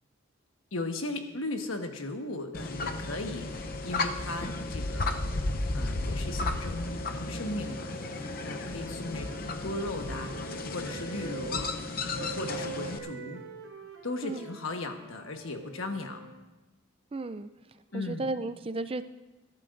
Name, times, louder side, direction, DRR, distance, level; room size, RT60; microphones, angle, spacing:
voice 1, 0.7-11.7 12.2-13.4 14.0-16.2 17.9-18.3, left 2 dB, 85° left, 5 dB, 1.3 m, -37 dB
sound 1, 2.5-13.0, left 2 dB, 45° left, 0.7 m, -34 dB
sound 2, 7.5-11.6 12.2-16.4, right 5 dB, 85° right, 2.9 m, -45 dB
voice 2, 17.1-17.5 17.9-19.0, right 2 dB, 25° right, 11 dB, 0.4 m, -34 dB
22.5 x 12.0 x 2.6 m, 1.1 s
head